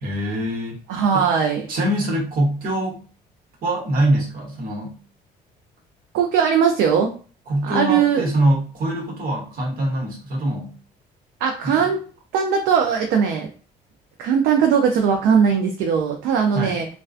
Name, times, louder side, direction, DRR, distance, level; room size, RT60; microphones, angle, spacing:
voice 1, 0.0-0.8 1.1-1.3 1.7-3.0 3.6-5.0 7.5-10.8 11.6-11.9 16.5-16.8, right 1 dB, 60° right, -2 dB, 0.9 m, -23 dB
voice 2, 0.9-1.7 6.1-7.1 7.6-8.2 11.4-12.0 12.3-13.5 14.2-16.9, right 7 dB, 90° right, 3 dB, 0.4 m, -19 dB
2.4 x 2.2 x 2.4 m, 0.40 s
cardioid pair, 110°, 17 cm